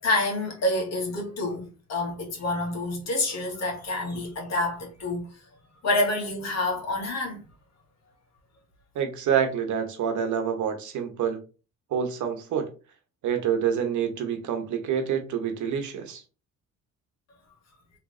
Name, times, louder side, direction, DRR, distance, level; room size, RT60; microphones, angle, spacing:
voice 1, 0.0-5.3 5.8-7.4, left 2 dB, 60° left, 1.7 m, -28 dB
voice 2, 8.9-11.4 11.9-12.7 13.2-16.2, right 8 dB, 75° right, 1.0 m, -27 dB
3.7 x 3.2 x 3.1 m
cardioid pair, 90°, 30 cm